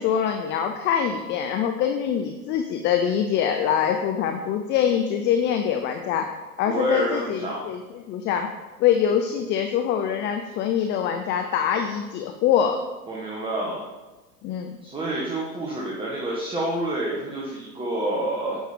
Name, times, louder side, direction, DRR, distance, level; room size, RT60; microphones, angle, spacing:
voice 1, 0.0-6.3 6.6-8.5 8.8-12.8 14.4-14.7, left 8 dB, 25° left, 5 dB, 0.5 m, -24 dB
voice 2, 6.6-7.6 13.1-13.8 14.8-18.6, right 1 dB, 10° right, -4 dB, 1.6 m, -28 dB
9.4 x 6.3 x 5.2 m, 1.2 s
hypercardioid pair, 110°, 48 cm